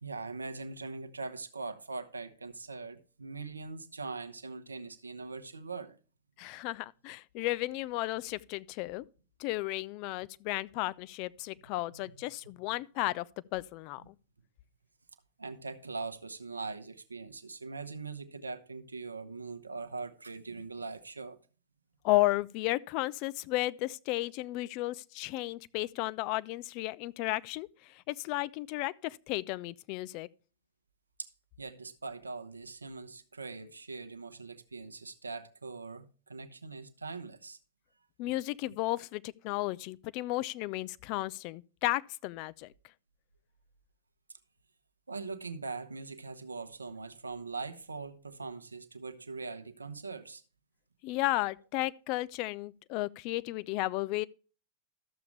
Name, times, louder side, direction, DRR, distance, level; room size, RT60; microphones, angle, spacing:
voice 1, 0.0-6.0 11.9-12.2 15.4-21.4 31.2-31.3 31.6-37.6 45.1-50.4, right 4 dB, 80° right, 0.8 m, -41 dB
voice 2, 6.4-9.1 9.4-13.3 13.5-14.1 22.0-30.3 38.2-42.7 51.0-54.3, left 18 dB, 45° left, 0.3 m, -33 dB
12.5 x 7.0 x 3.2 m
figure-of-eight pair, 90°, 0 cm